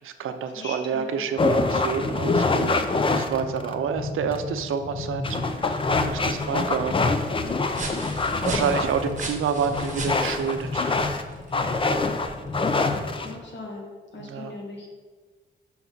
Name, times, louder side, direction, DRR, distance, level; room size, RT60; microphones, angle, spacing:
voice 1, 0.0-2.8 3.1-7.1 7.8-11.0 14.2-14.6, right 6 dB, 85° right, 8 dB, 0.6 m, -29 dB
voice 2, 0.6-1.2 12.9-14.9, left 2 dB, 60° left, -1 dB, 1.6 m, -39 dB
sound 1, 1.4-13.4, left 3 dB, 25° left, 0.5 m, -26 dB
sound 2, 5.5-12.7, right 3 dB, 35° right, 1.2 m, -39 dB
6.0 x 5.6 x 3.9 m, 1.5 s
wide cardioid pair, 120°, 21 cm